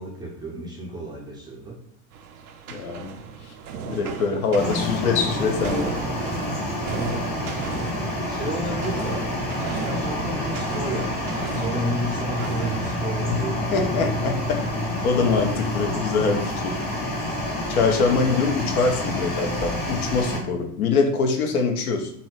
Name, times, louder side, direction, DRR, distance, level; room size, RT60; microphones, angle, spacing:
voice 1, 0.0-1.8 4.5-6.0 7.0-7.2 8.3-9.3 9.7-14.1 16.6-16.7, right 1 dB, 10° right, -3 dB, 0.4 m, -32 dB
sound 1, 2.1-17.0, right 6 dB, 70° right, 0.5 m, -37 dB
voice 2, 2.7-3.2 3.5-3.6 3.9-5.9 13.3-13.4 13.7-16.8 17.7-22.1, left 4 dB, 70° left, 3 dB, 0.7 m, -24 dB
sound 2, 4.6-20.4, left 1 dB, 20° left, 0.9 m, -28 dB
2.7 x 2.6 x 3.2 m, 0.68 s
figure-of-eight pair, 70°, 46 cm